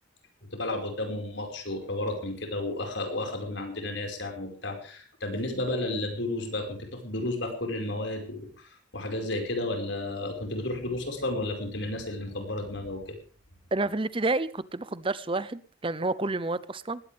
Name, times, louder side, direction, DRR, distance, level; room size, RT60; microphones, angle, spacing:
voice 1, 0.4-13.2, left 2 dB, 65° left, 5.1 m, -32 dB
voice 2, 13.7-17.0, right 2 dB, 25° right, 0.7 m, -29 dB
20.0 x 16.5 x 3.5 m
head